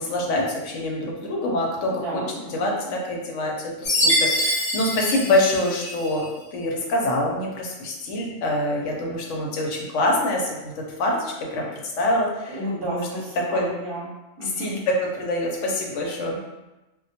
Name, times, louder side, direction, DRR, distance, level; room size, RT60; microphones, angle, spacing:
voice 1, 0.0-1.9 2.5-6.3 6.5-10.7 11.0-11.7 12.0-13.1 13.5-13.7 14.4-16.4, left 1 dB, 85° left, -1 dB, 0.9 m, -25 dB
voice 2, 1.9-2.9 12.5-14.1 14.4-14.8, right 1 dB, 60° right, -5 dB, 0.8 m, -32 dB
Chime, 3.8-6.2, equal, 20° left, 1.0 m, -24 dB
2.2 x 2.1 x 2.7 m, 1.0 s
omnidirectional pair, 1.2 m